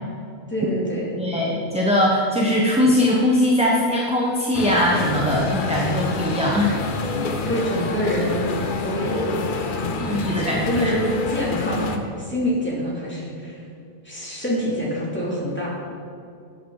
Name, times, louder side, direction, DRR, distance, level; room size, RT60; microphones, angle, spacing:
voice 1, 0.5-1.1 7.5-9.4 9.7-13.6 14.0-15.7, equal, 10° left, -6 dB, 2.7 m, -26 dB
voice 2, 1.2-6.8 10.0-10.9, left 1 dB, 5° right, -3 dB, 0.9 m, -21 dB
sound 1, 4.5-12.0, left 3 dB, 50° left, 0.9 m, -27 dB
12.5 x 8.5 x 3.9 m, 2.5 s
omnidirectional pair, 1.2 m